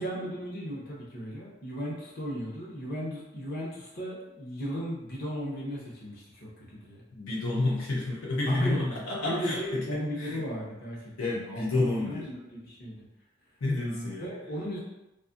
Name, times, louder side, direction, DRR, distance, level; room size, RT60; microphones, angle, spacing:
voice 1, 0.0-7.0 8.5-13.1 13.8-14.8, equal, 45° left, -5 dB, 0.7 m, -36 dB
voice 2, 7.1-10.4 11.2-12.3 13.6-14.3, left 2 dB, 85° left, -4 dB, 0.6 m, -30 dB
2.6 x 2.3 x 2.5 m, 0.93 s
head